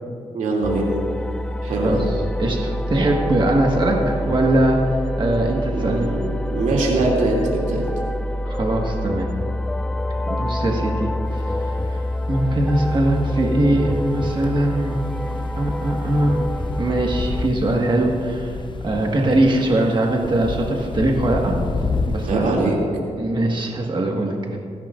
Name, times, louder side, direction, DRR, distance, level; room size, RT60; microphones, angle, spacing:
voice 1, 0.3-0.9 1.6-2.0 5.7-7.9 22.3-22.8, right 2 dB, 85° right, -2 dB, 2.7 m, -22 dB
sound 1, 0.6-17.5, left 1 dB, 5° left, 0.3 m, -26 dB
voice 2, 1.8-4.8 5.2-6.1 8.5-9.3 10.3-11.4 11.9-12.0 12.3-15.0 15.6-16.4 16.8-18.6 18.8-21.5 22.1-22.5 23.2-24.6, right 1 dB, 40° right, 0 dB, 1.6 m, -21 dB
sound 2, 11.3-22.3, left 4 dB, 40° left, 0.8 m, -31 dB
28.0 x 10.5 x 2.5 m, 2.4 s
cardioid pair, 90°, 13 cm